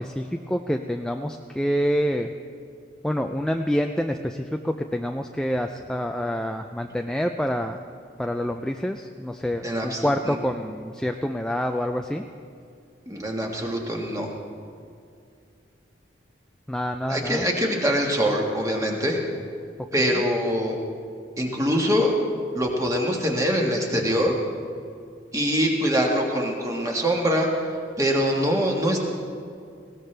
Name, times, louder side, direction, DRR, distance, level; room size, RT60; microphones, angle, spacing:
voice 1, 0.0-2.3 3.0-7.8 8.2-12.2 16.7-17.5 20.0-20.2, equal, 5° left, 4 dB, 0.3 m, -27 dB
voice 2, 9.6-10.4 13.1-14.3 17.1-19.2 19.9-20.8 21.4-22.2 22.5-24.3 25.3-27.5 28.0-29.0, equal, 15° right, 0 dB, 1.6 m, -23 dB
20.0 x 17.5 x 3.3 m, 2.4 s
head